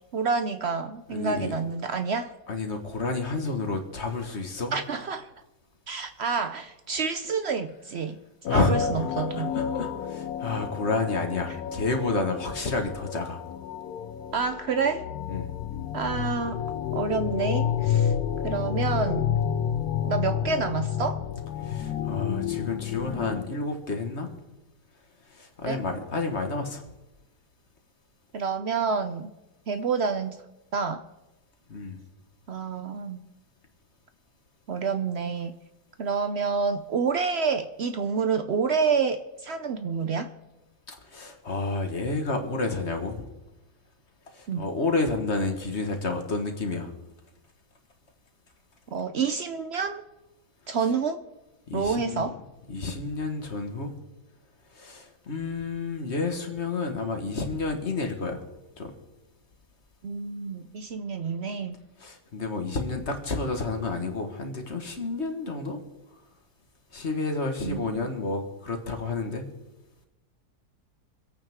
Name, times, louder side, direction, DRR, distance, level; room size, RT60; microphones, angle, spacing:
voice 1, 0.1-2.3 4.7-5.3 5.9-8.2 8.5-9.5 11.5-11.6 14.3-15.1 15.9-16.7 16.9-18.1 18.4-19.4 20.0-21.2 25.7-25.8 28.3-29.3 29.7-30.4 30.7-31.0 32.5-33.2 34.7-35.5 36.0-40.3 44.5-44.6 48.9-50.0 50.7-51.2 51.7-52.4 60.0-61.8 67.6-68.1, right 5 dB, 70° right, 8 dB, 0.6 m, -28 dB
voice 2, 1.1-1.5 2.5-4.8 8.5-9.1 9.4-13.4 15.3-15.5 21.6-24.3 25.4-26.8 31.7-32.0 40.9-43.2 44.6-46.9 51.7-52.3 52.7-53.9 54.8-58.4 58.8-58.9 62.0-65.8 66.9-69.4, left 3 dB, 40° left, 4 dB, 1.7 m, -30 dB
sound 1, 8.4-23.4, left 9 dB, 65° left, 1.1 m, -30 dB
26.0 x 8.8 x 3.6 m, 1.0 s
omnidirectional pair, 1.9 m